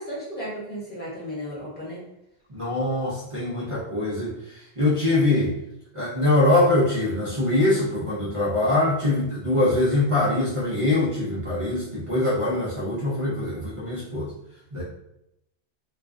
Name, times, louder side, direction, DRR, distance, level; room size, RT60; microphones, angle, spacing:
voice 1, 0.0-2.0, equal, 10° left, -8 dB, 0.9 m, -34 dB
voice 2, 2.5-5.6 5.9-14.3 14.7-14.8, left 2 dB, 45° right, -8 dB, 0.4 m, -23 dB
2.3 x 2.2 x 2.4 m, 0.82 s
omnidirectional pair, 1.2 m